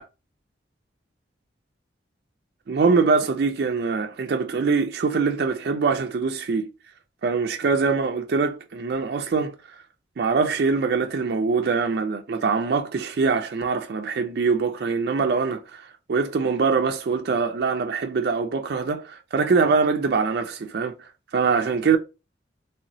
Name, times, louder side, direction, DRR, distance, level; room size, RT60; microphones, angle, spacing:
voice 1, 2.7-6.7 7.2-9.8 10.2-20.9 21.3-22.0, right 4 dB, 55° right, 0.4 m, -23 dB
3.3 x 2.9 x 2.6 m
head